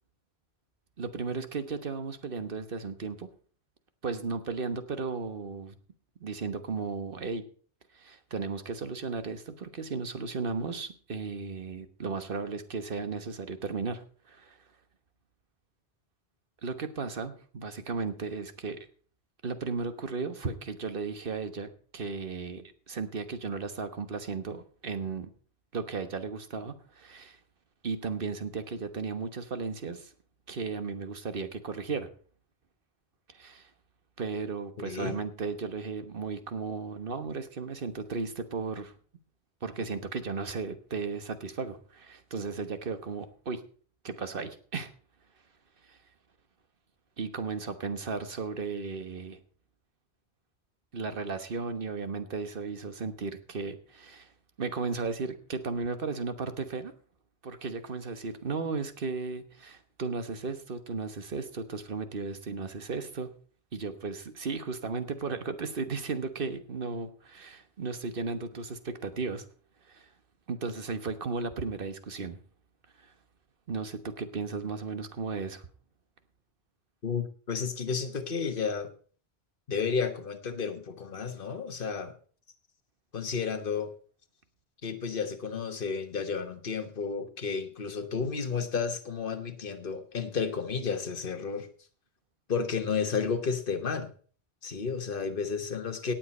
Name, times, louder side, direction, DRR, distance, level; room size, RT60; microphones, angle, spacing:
voice 1, 1.0-3.3 4.0-5.7 6.2-7.4 7.9-14.6 16.6-18.9 19.4-25.3 25.7-27.4 27.8-30.1 30.5-32.1 33.3-33.7 34.2-38.9 39.6-43.6 44.0-44.9 45.8-46.0 47.2-49.4 50.9-54.3 54.6-56.9 57.4-63.3 63.7-69.4 69.9-70.1 70.5-72.4 73.0-73.1 73.7-75.7, right 4 dB, 60° right, 10 dB, 1.4 m, -35 dB
voice 2, 34.8-35.2 77.0-78.9 79.7-82.1 83.1-83.9 84.8-91.7 92.5-94.1 94.6-96.1, left 5 dB, 55° left, 7 dB, 1.5 m, -32 dB
18.0 x 7.6 x 4.3 m, 0.43 s
omnidirectional pair, 1.1 m